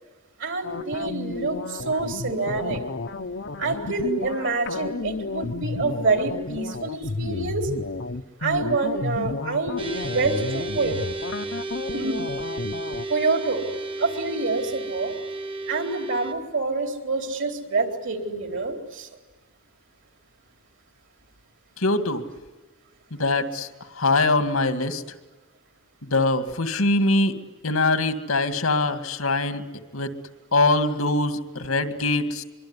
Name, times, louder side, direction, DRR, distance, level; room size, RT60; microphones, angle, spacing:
voice 1, 0.4-2.8 3.6-7.7 8.4-9.8 10.1-11.0 11.9-12.2 13.1-13.6 14.0-15.1 15.7-19.1, right 3 dB, 60° right, 5 dB, 4.1 m, -27 dB
sound 1, 0.6-13.0, left 3 dB, 60° left, 1.0 m, -32 dB
sound 2, 9.8-16.3, right 2 dB, 25° right, 1.4 m, -33 dB
voice 2, 21.8-22.3 23.1-23.7 24.0-25.0 26.0-27.3 27.6-29.6 29.9-30.1 30.5-32.4, left 2 dB, 85° left, 10 dB, 2.2 m, -23 dB
24.5 x 24.0 x 9.8 m, 1.2 s
head